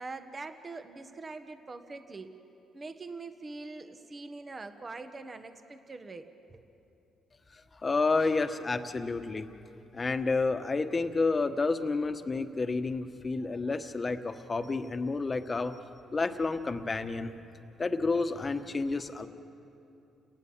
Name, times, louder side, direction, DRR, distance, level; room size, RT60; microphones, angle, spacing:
voice 1, 0.0-2.4 2.7-6.7, right 3 dB, 30° right, 8 dB, 1.4 m, -43 dB
voice 2, 7.5-9.5 9.9-15.8 16.1-17.3 17.8-19.3, left 3 dB, 30° left, 8 dB, 1.4 m, -30 dB
30.0 x 18.5 x 7.5 m, 2.8 s
cardioid pair, 90°, 0 cm